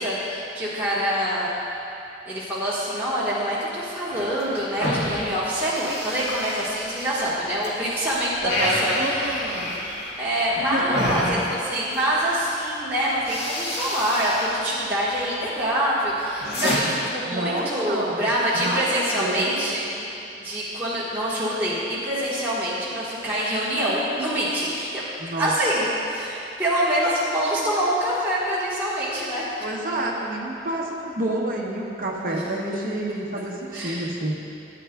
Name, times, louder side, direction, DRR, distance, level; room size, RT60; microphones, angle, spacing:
voice 1, 0.0-1.5 2.2-9.7 10.2-20.1 20.4-25.0 25.4-29.6 33.7-34.0, equal, 10° right, -11 dB, 1.5 m, -25 dB
sound 1, 4.1-7.7 8.0-12.1 12.7-12.9 13.1-14.6 14.9-15.4 15.8-16.8, left 1 dB, 65° left, 2.0 m, -30 dB
voice 2, 8.4-9.8 10.7-11.4 17.3-19.6 25.2-25.5 29.6-34.3, right 1 dB, 50° right, -1 dB, 0.9 m, -28 dB
14.5 x 9.3 x 2.3 m, 2.8 s
head